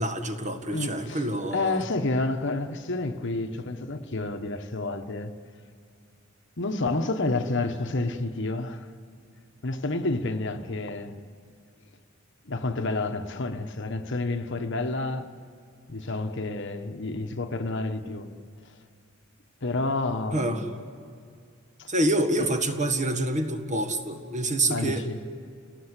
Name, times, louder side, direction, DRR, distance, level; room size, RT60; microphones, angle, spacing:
voice 1, 0.0-1.8 20.3-20.6 21.9-25.0, right 1 dB, 35° right, 1.7 m, -27 dB
voice 2, 0.7-5.3 6.6-8.9 9.6-11.2 12.5-15.3 15.9-18.3 19.6-20.6 21.8-21.9 22.4-22.5 24.7-25.2, left 2 dB, 60° left, 1.2 m, -29 dB
28.5 x 18.0 x 8.2 m
head